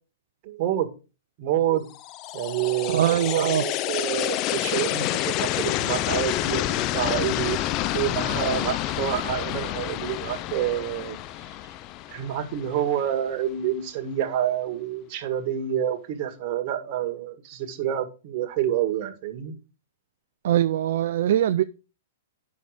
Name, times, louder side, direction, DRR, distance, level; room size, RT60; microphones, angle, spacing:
voice 1, 0.4-0.9 1.4-1.8 2.3-6.7 6.9-7.6 7.9-11.2 12.1-19.6, right 10 dB, 45° right, 1.8 m, -28 dB
sound 1, 1.9-13.0, left 14 dB, 40° left, 0.6 m, -28 dB
voice 2, 2.9-3.6 20.4-21.6, right 11 dB, 60° right, 0.5 m, -22 dB
9.6 x 6.7 x 4.9 m
hypercardioid pair, 115°, 0 cm